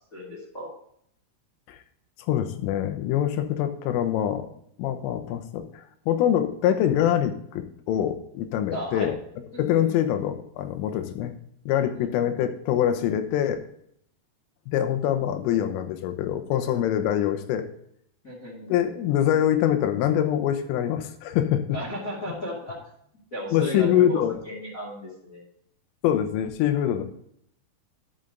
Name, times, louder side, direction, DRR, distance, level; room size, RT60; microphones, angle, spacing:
voice 1, 0.1-0.7 8.7-9.1 9.5-10.0 11.9-12.1 18.2-18.9 21.7-22.8 23.3-25.4 26.9-27.0, equal, 40° left, -3 dB, 1.1 m, -35 dB
voice 2, 2.3-9.2 9.6-11.3 11.7-13.6 14.7-17.7 18.7-21.8 23.5-24.4 26.0-27.0, left 10 dB, 90° left, 9 dB, 3.5 m, -24 dB
11.0 x 6.6 x 3.8 m, 0.69 s
omnidirectional pair, 5.6 m